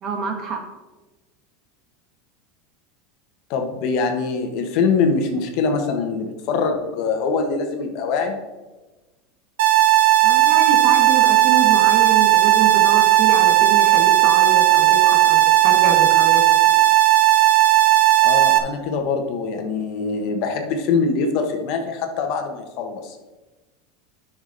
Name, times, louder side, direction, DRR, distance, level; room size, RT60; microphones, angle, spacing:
voice 1, 0.0-0.6 10.2-16.4, right 4 dB, 30° right, 4 dB, 1.4 m, -26 dB
voice 2, 3.5-8.3 18.2-23.2, left 4 dB, 45° left, 4 dB, 1.2 m, -23 dB
sound 1, 9.6-18.6, right 14 dB, 85° right, 0.9 m, -15 dB
10.5 x 6.1 x 4.0 m, 1.2 s
supercardioid pair, 165°, 0 cm